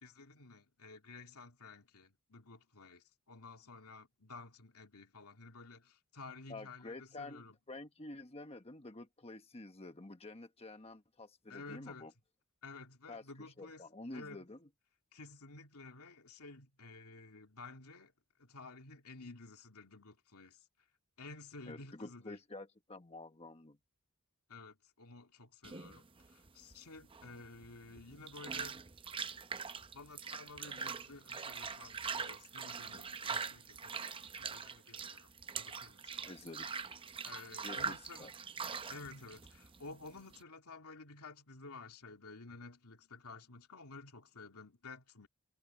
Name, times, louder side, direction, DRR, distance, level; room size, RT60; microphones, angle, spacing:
voice 1, 0.0-7.6 11.5-12.1 12.6-13.8 14.1-14.5 15.1-18.1 18.4-20.6 21.2-22.4 24.5-28.8 29.9-33.9 34.4-36.6 37.2-38.3 38.9-45.3, left 3 dB, 85° left, 2.7 m, -52 dB
voice 2, 6.5-7.4 7.7-12.1 13.1-14.7 21.7-23.8 36.2-36.7 37.6-38.3, left 2 dB, 25° left, 1.2 m, -49 dB
sound 1, 25.6-40.4, right 5 dB, 25° right, 0.6 m, -43 dB
head